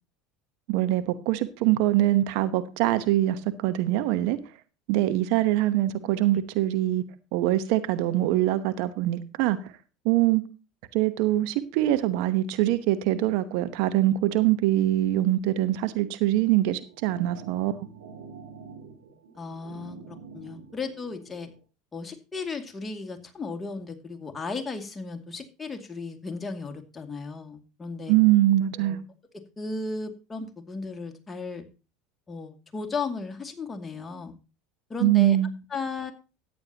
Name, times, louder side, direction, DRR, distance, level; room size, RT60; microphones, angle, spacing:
voice 1, 0.7-4.4 4.9-7.0 7.3-9.7 10.0-10.4 10.9-17.7 28.1-29.0 35.0-35.5, right 14 dB, 65° right, 0.9 m, -23 dB
sound 1, 16.6-21.6, right 5 dB, 80° right, 6.4 m, -46 dB
voice 2, 19.3-21.5 21.9-28.1 28.7-29.0 29.6-31.7 32.3-34.3 34.9-35.4 35.7-36.1, left 4 dB, 20° left, 2.3 m, -35 dB
14.0 x 9.5 x 2.9 m
hypercardioid pair, 80°, 0 cm